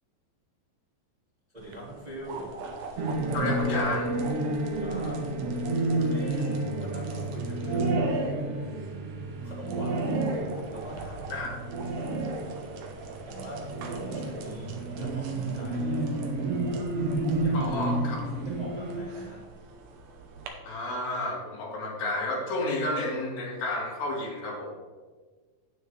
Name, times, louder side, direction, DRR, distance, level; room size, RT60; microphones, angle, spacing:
voice 1, 1.5-2.6 4.7-5.3 6.1-8.1 9.4-10.2 10.7-11.5 13.3-16.3 17.4-17.7 18.1-19.5, right 1 dB, 15° right, -6 dB, 1.5 m, -42 dB
sound 1, 1.6-20.5, right 4 dB, 90° right, 2.9 m, -43 dB
sound 2, 3.0-19.0, right 2 dB, 65° right, 1.5 m, -30 dB
voice 2, 3.3-4.1 11.3-11.5 17.5-18.2 20.6-24.7, left 2 dB, 85° left, -3 dB, 4.0 m, -31 dB
9.3 x 9.3 x 3.4 m, 1.4 s
omnidirectional pair, 4.1 m